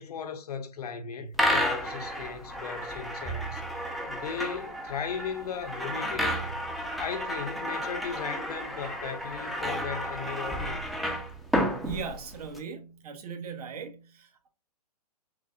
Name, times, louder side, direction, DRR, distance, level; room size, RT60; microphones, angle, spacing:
voice 1, 0.0-6.6 7.0-10.9, left 6 dB, 70° left, 0.9 m, -37 dB
sound 1, 1.3-12.6, equal, ahead, 0.5 m, -32 dB
voice 2, 11.8-14.5, right 6 dB, 70° right, 1.0 m, -39 dB
5.9 x 2.1 x 2.5 m
hypercardioid pair, 135°, 20 cm